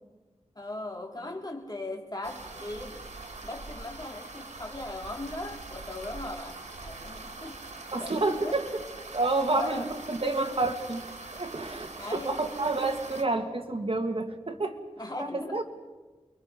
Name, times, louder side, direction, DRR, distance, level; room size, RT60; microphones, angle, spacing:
voice 1, 0.5-3.1 3.4-7.6 8.0-8.6 9.4-9.9 12.0-12.5 15.0-15.6, left 2 dB, 35° left, 2 dB, 3.3 m, -38 dB
sound 1, 2.2-13.2, right 3 dB, 90° right, 2.7 m, -43 dB
voice 2, 7.9-8.6 9.1-11.0 11.3-14.8 15.2-15.6, right 2 dB, 55° right, 4 dB, 2.3 m, -29 dB
29.0 x 22.5 x 5.4 m, 1.2 s
wide cardioid pair, 70°, 12 cm